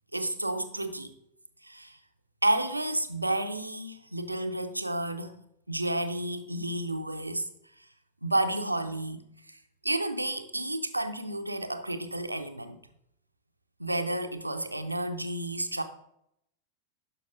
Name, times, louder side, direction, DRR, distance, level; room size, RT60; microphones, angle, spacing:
voice 1, 0.1-1.1 1.6-2.0 2.4-5.3 5.7-7.5 8.2-12.8 13.8-15.8, right 1 dB, 85° right, 0.6 m, -31 dB
11.5 x 5.5 x 3.7 m
figure-of-eight pair, 90°, 0 cm